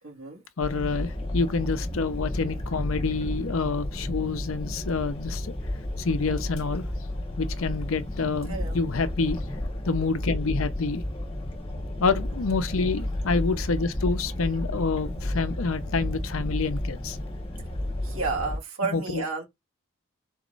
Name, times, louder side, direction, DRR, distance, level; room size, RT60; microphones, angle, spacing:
voice 1, 0.0-0.4 3.0-3.1 8.4-8.8 13.3-13.6 18.0-19.4, right 4 dB, 75° right, 2.0 m, -32 dB
voice 2, 0.6-5.5 6.0-6.8 7.4-9.4 9.8-11.0 12.0-17.2 18.9-19.2, left 4 dB, 70° left, 0.6 m, -27 dB
sound 1, 0.6-18.6, left 1 dB, 25° left, 1.2 m, -32 dB
4.3 x 3.1 x 3.9 m
head